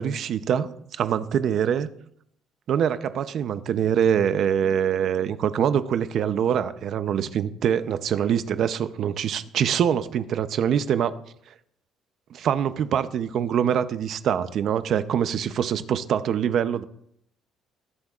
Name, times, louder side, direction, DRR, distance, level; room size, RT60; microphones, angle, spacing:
voice 1, 0.0-1.9 2.7-11.1 12.3-16.8, right 8 dB, 55° right, 12 dB, 0.7 m, -24 dB
21.0 x 8.1 x 2.5 m, 0.70 s
cardioid pair, 130°, 0 cm